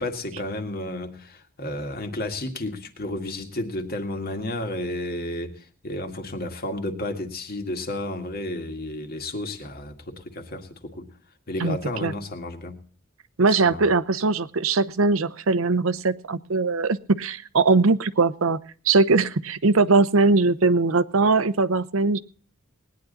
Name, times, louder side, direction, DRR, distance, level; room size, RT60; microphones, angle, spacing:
voice 1, 0.0-11.1 11.5-12.8 13.6-13.8, left 1 dB, 50° left, 1.9 m, -32 dB
voice 2, 11.6-12.1 13.4-18.6 18.9-22.2, right 3 dB, 80° right, 0.8 m, -21 dB
19.5 x 10.0 x 4.0 m
head